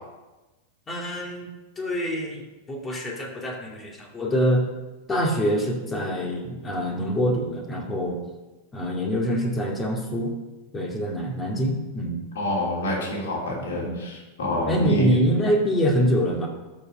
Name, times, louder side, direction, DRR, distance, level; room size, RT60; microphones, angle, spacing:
voice 1, 0.9-1.5 1.8-4.7 5.1-8.2 8.7-10.3 10.7-12.2 13.5-14.0 14.6-16.5, equal, 20° left, 0 dB, 2.4 m, -25 dB
voice 2, 12.4-15.1, left 1 dB, 65° left, -4 dB, 3.5 m, -27 dB
12.5 x 5.5 x 5.3 m, 1.1 s
figure-of-eight pair, 90°, 0 cm